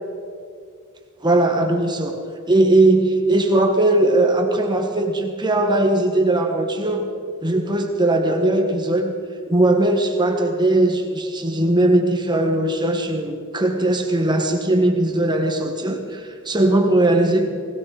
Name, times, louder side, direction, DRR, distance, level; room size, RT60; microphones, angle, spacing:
voice 1, 1.2-2.2 2.5-7.1 7.4-9.1 9.5-17.5, right 1 dB, 20° right, 3 dB, 1.4 m, -19 dB
19.0 x 17.5 x 4.1 m, 2.4 s
head